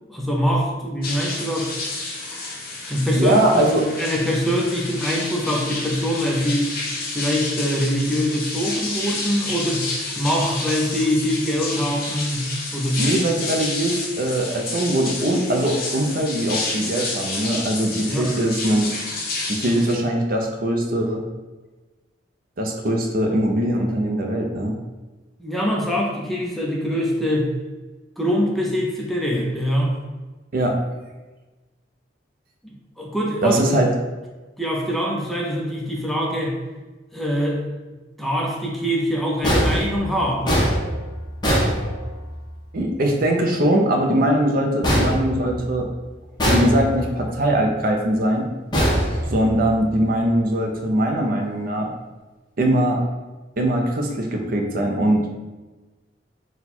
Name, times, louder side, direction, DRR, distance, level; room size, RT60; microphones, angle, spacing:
voice 1, 0.1-1.7 2.9-3.4 4.0-6.7 7.1-13.0 18.0-18.4 25.4-27.5 28.2-30.0 33.0-33.7 34.6-36.6 37.1-37.6 38.2-40.7, equal, ahead, -3 dB, 0.6 m, -23 dB
sound 1, 1.0-19.9, left 3 dB, 50° left, 0.9 m, -30 dB
voice 2, 3.2-3.9 13.0-18.9 19.5-21.3 22.6-24.8 30.5-30.8 33.4-33.9 42.7-45.9 46.5-48.5 49.3-51.9 52.6-53.0 53.6-55.3, right 1 dB, 50° right, 2 dB, 0.5 m, -21 dB
sound 2, 39.4-42.5 44.8-45.9 46.4-47.2 48.7-49.8, equal, 25° left, 0.9 m, -22 dB
4.2 x 2.2 x 4.2 m, 1.2 s
head